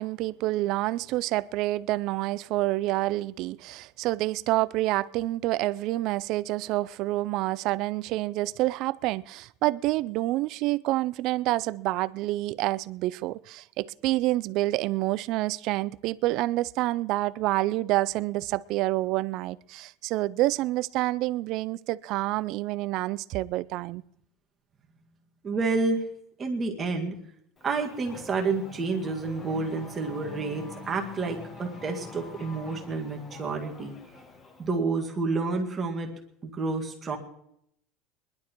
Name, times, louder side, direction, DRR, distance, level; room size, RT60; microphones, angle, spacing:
voice 1, 0.0-24.0, right 17 dB, 55° right, 0.4 m, -28 dB
voice 2, 25.4-26.0 26.4-27.1 27.6-34.0 34.6-36.1 36.4-37.2, right 3 dB, 25° right, 2.0 m, -29 dB
Race car auto racing / Accelerating revving vroom, 27.6-34.8, left 3 dB, 30° left, 1.9 m, -45 dB
21.0 x 11.5 x 4.5 m
supercardioid pair, 135°, 0 cm